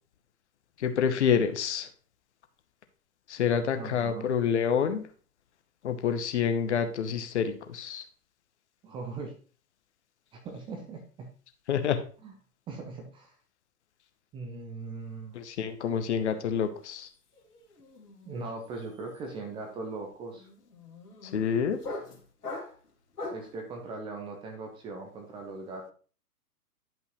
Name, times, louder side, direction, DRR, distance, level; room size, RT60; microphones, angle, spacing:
voice 1, 0.8-1.9 3.3-5.0 5.8-8.0 11.7-12.0 15.3-17.1 21.2-21.8, left 7 dB, 45° left, 8 dB, 1.0 m, -27 dB
voice 2, 3.8-4.3 8.8-9.3 10.3-11.3 12.2-12.3 12.7-13.3 14.3-15.4 18.3-20.5 23.3-25.9, right 3 dB, 10° right, 1 dB, 0.7 m, -40 dB
sound 1, 16.8-17.1 17.3-23.6, left 2 dB, 70° left, 2.3 m, -42 dB
10.5 x 5.4 x 3.1 m, 0.40 s
figure-of-eight pair, 115°, 47 cm